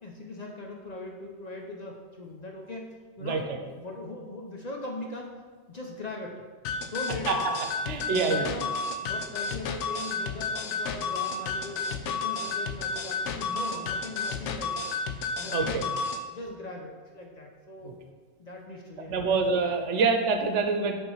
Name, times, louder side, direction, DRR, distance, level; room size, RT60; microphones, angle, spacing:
voice 1, 0.0-3.4 3.8-5.3 5.7-6.4 6.8-7.5 8.1-14.9 15.4-15.9 16.3-18.0 18.4-19.4, left 2 dB, 45° left, 0 dB, 0.7 m, -40 dB
voice 2, 3.2-3.6 7.3-7.4 7.9-8.5 15.5-15.8 17.8-17.9 19.1-20.9, right 4 dB, 80° right, 5 dB, 1.0 m, -26 dB
sound 1, 6.6-16.2, left 4 dB, 85° left, 0.9 m, -31 dB
5.8 x 3.6 x 5.5 m, 1.5 s
omnidirectional pair, 1.2 m